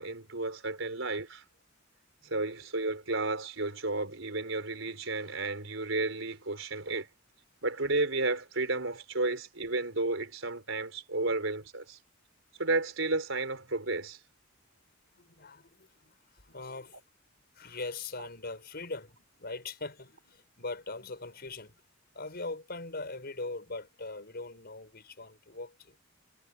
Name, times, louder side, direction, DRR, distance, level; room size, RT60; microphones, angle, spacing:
voice 1, 0.0-1.4 2.2-7.1 7.6-12.0 12.6-14.2, right 2 dB, 75° right, 4.9 m, -32 dB
voice 2, 15.2-16.1 16.4-17.0 17.6-21.7 22.1-26.0, left 3 dB, 55° left, 5.6 m, -41 dB
head